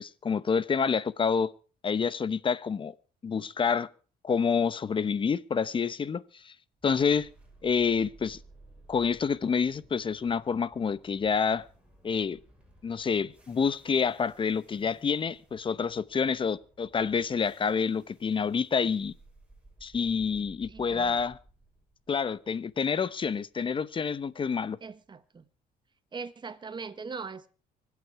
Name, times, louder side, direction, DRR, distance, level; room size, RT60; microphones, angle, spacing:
voice 1, 0.0-1.5 1.8-2.9 3.2-3.9 4.2-6.5 6.8-7.3 7.6-8.4 8.9-11.6 12.0-12.4 12.8-19.1 19.8-21.4 22.1-24.8, left 6 dB, 30° left, 0.9 m, -28 dB
sound 1, 6.8-24.9, right 2 dB, 5° right, 6.1 m, -58 dB
voice 2, 20.3-21.2 24.8-25.4 26.1-27.5, right 5 dB, 25° right, 1.4 m, -41 dB
25.0 x 8.4 x 4.7 m
cardioid pair, 110°, 17 cm